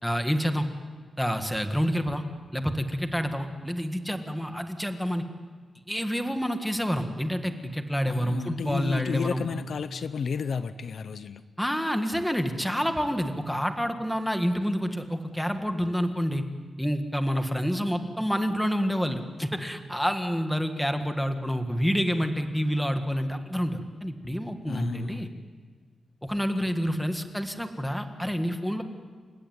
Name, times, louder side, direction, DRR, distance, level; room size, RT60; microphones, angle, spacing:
voice 1, 0.0-0.7 1.2-2.2 2.5-5.2 5.9-9.4 11.6-16.4 16.8-25.3 26.2-28.8, equal, ahead, 6 dB, 1.7 m, -28 dB
voice 2, 8.0-11.4 24.7-25.3, left 6 dB, 60° left, 12 dB, 0.8 m, -32 dB
29.0 x 16.5 x 9.6 m, 1.5 s
wide cardioid pair, 155°, 0 cm